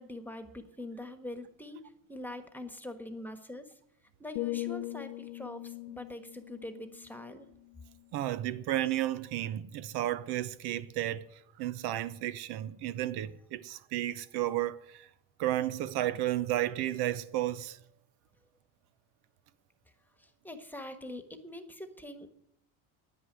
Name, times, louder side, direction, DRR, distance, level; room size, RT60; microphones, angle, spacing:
voice 1, 0.0-1.8 2.1-3.7 4.2-7.5 20.4-22.3, left 1 dB, 5° left, 1.4 m, -43 dB
sound 1, 4.4-8.3 8.7-9.0, left 19 dB, 85° left, 0.6 m, -41 dB
voice 2, 8.1-11.3 11.6-15.1 15.4-17.8, right 13 dB, 75° right, 0.9 m, -32 dB
9.7 x 9.6 x 9.6 m
cardioid pair, 125°, 39 cm